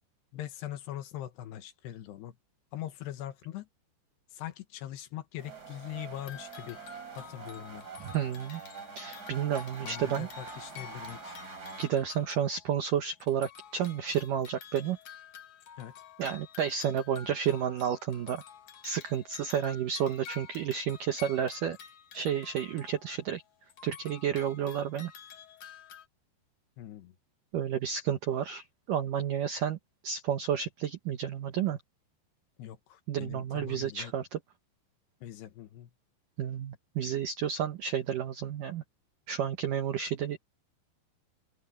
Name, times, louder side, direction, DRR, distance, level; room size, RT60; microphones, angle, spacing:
voice 1, 0.3-2.3 2.7-3.7 4.3-6.8 7.2-7.9 9.8-11.4 15.8-15.9 26.8-27.1 32.6-34.1 35.2-35.9, left 12 dB, 70° left, 3.0 m, -42 dB
sound 1, 5.4-11.9, right 5 dB, 25° right, 3.5 m, -45 dB
sound 2, 6.2-12.9 13.2-23.4 23.7-26.1, left 7 dB, 55° left, 2.5 m, -50 dB
voice 2, 8.0-8.6 9.0-10.3 11.8-15.0 16.2-18.4 18.8-21.8 22.1-23.4 23.8-25.1 27.5-29.8 30.0-31.8 33.1-34.4 36.4-38.8 39.3-40.4, right 9 dB, 75° right, 1.9 m, -31 dB
open air
omnidirectional pair, 5.4 m